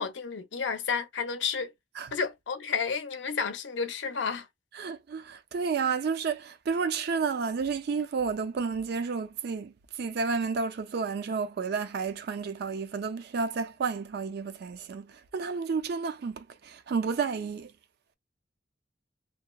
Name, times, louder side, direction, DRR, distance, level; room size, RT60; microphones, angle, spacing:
voice 1, 0.0-1.7 2.1-4.5, left 5 dB, 70° left, 0.6 m, -31 dB
voice 2, 4.7-17.7, right 5 dB, 55° right, 0.4 m, -31 dB
2.8 x 2.0 x 2.2 m
head